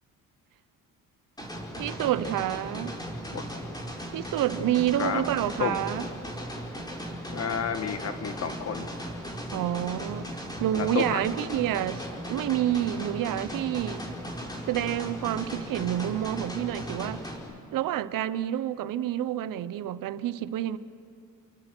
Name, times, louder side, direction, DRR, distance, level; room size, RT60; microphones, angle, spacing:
sound 1, 1.4-17.4, equal, 10° left, 4.6 m, -37 dB
voice 1, 1.8-2.9 4.1-6.1 9.5-10.3 10.6-14.0 14.7-17.2 17.7-20.8, right 12 dB, 80° right, 0.9 m, -28 dB
voice 2, 7.3-8.9 9.4-9.6 10.7-11.2, left 7 dB, 50° left, 1.4 m, -31 dB
30.0 x 23.0 x 6.2 m
cardioid pair, 130°, 33 cm